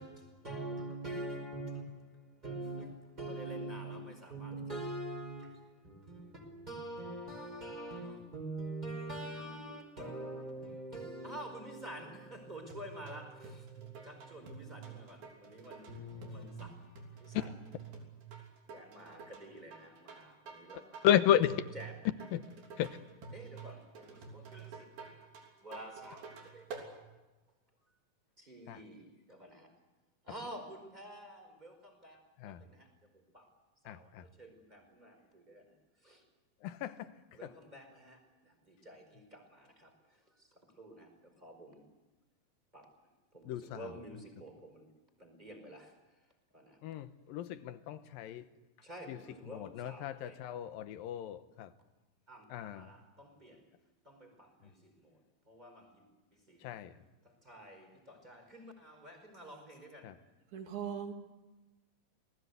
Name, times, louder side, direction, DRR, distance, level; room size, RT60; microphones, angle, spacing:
voice 1, 0.0-17.5 18.7-21.0 21.7-21.9 23.3-25.2 25.6-27.0 28.4-29.7 30.2-32.2 32.5-32.9 33.1-33.4 33.8-34.1 34.4-35.7 36.0-36.2 37.3-38.2 38.4-39.9 40.8-41.1 41.4-41.8 42.7-42.9 43.3-44.9 45.2-45.9 46.5-46.8 48.8-50.6 52.3-53.6 54.0-55.2 55.5-56.0 56.5-56.6 57.4-60.0, right 1 dB, 10° right, 4.8 m, -46 dB
sound 1, 12.7-26.9, right 5 dB, 80° right, 5.1 m, -49 dB
voice 2, 21.0-21.6 22.1-22.4 22.8-23.0 28.7-28.8 32.4-32.6 33.9-34.3 36.6-37.1 37.4-37.5 43.4-44.0 46.8-48.5 49.1-51.7 52.5-52.9 56.6-56.9 60.0-60.2, left 11 dB, 80° left, 2.7 m, -33 dB
voice 3, 60.5-61.1, right 8 dB, 55° right, 3.8 m, -39 dB
28.0 x 20.0 x 8.2 m
omnidirectional pair, 4.2 m